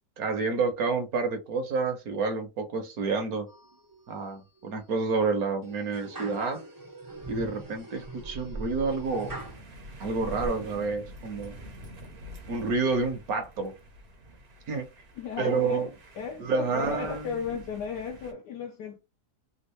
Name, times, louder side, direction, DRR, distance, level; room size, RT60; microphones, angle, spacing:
voice 1, 0.2-3.5 4.1-6.6 7.3-9.3 10.0-11.6 12.5-13.7 14.7-14.9 15.4-15.9 16.4-17.3, right 4 dB, 65° right, 1.2 m, -29 dB
sound 1, 3.5-4.2 4.6-5.0 5.6-9.6 10.1-10.5, right 2 dB, 25° right, 0.4 m, -41 dB
sound 2, 9.0-18.3, equal, 50° right, 0.9 m, -47 dB
voice 2, 15.2-15.9 16.2-19.0, left 6 dB, 80° left, 1.2 m, -35 dB
3.6 x 2.4 x 3.1 m
omnidirectional pair, 1.8 m